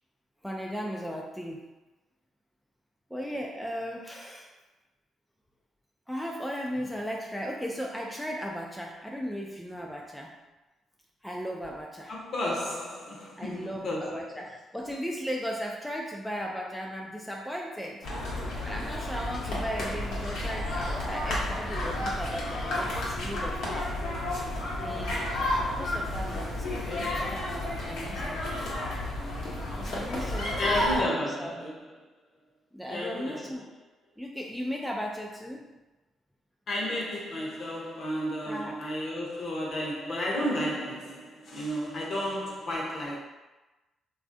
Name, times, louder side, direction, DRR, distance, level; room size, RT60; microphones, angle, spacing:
voice 1, 0.4-1.7 3.1-4.5 6.1-10.3 11.2-12.2 13.4-18.1 18.6-24.0 24.8-25.2 25.8-28.8 29.8-31.6 32.7-33.7 34.2-35.7 38.4-38.8, equal, ahead, 0.3 m, -36 dB
voice 2, 12.1-14.2 26.3-26.4 26.8-27.2 30.6-31.7 32.9-33.5 36.7-43.2, equal, 55° left, 0.8 m, -32 dB
sound 1, 18.0-31.0, left 1 dB, 80° left, 0.9 m, -31 dB
3.1 x 2.4 x 2.5 m
cardioid pair, 90°, 0 cm